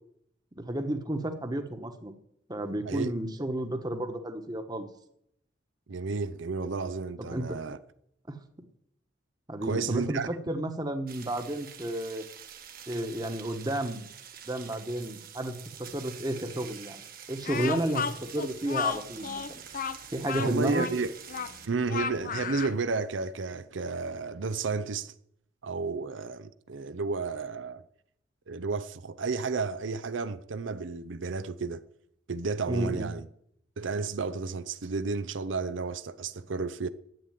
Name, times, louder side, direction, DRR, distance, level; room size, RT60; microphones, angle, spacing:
voice 1, 0.5-2.1 2.5-4.9 7.2-7.6 8.3-8.4 9.5-12.3 12.9-14.1 14.5-17.0 17.3-19.6 20.1-20.9 32.7-33.1, right 1 dB, 20° right, 1.3 m, -32 dB
voice 2, 5.9-7.8 9.6-10.3 20.4-21.1 21.7-25.1 25.6-27.8 28.5-31.8 32.3-33.2 33.8-36.9, right 4 dB, 80° right, 0.6 m, -32 dB
sound 1, 11.1-21.7, right 9 dB, 50° right, 1.5 m, -47 dB
Speech, 17.4-22.8, left 6 dB, 45° left, 0.6 m, -33 dB
11.0 x 8.3 x 9.4 m
head